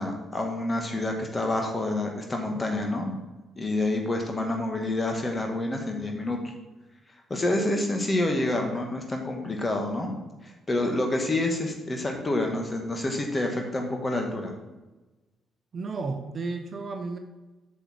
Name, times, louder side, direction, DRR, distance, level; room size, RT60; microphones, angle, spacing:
voice 1, 0.0-3.2 3.6-6.5 7.3-10.2 10.4-14.5, left 2 dB, 25° left, 2 dB, 1.9 m, -28 dB
voice 2, 15.7-17.2, right 3 dB, 40° right, 6 dB, 0.9 m, -32 dB
7.9 x 6.5 x 4.5 m, 1.1 s
figure-of-eight pair, 40°, 0 cm